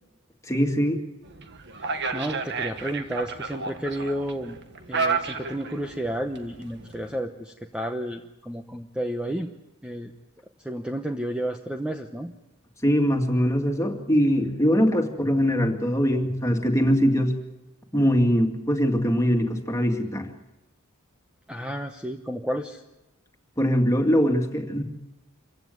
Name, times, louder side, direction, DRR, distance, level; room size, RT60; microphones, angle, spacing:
voice 1, 0.5-1.0 12.8-17.3 17.9-20.3 23.6-24.8, equal, 15° left, 3 dB, 2.3 m, -22 dB
sound 1, 1.2-7.2, right 4 dB, 55° right, 1.6 m, -32 dB
voice 2, 1.8-4.6 4.9-9.5 9.8-10.1 10.6-12.3 21.5-22.8, right 1 dB, 5° right, 4 dB, 1.0 m, -31 dB
26.5 x 16.0 x 9.4 m, 0.99 s
head